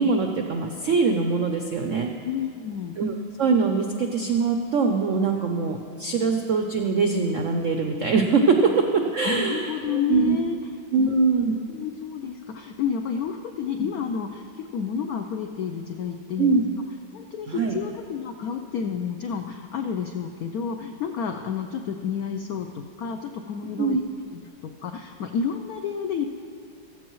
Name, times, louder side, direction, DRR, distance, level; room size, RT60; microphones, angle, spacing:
voice 1, 0.0-2.1 3.0-10.4 10.9-11.5 16.4-16.7 17.5-17.8 23.8-24.0, right 4 dB, 75° right, 4 dB, 0.7 m, -23 dB
voice 2, 2.2-3.0 9.3-10.6 11.0-11.2 11.7-16.6 17.1-24.0 24.3-26.2, left 7 dB, 80° left, 6 dB, 0.8 m, -30 dB
14.5 x 14.5 x 3.1 m, 2.3 s
omnidirectional pair, 2.2 m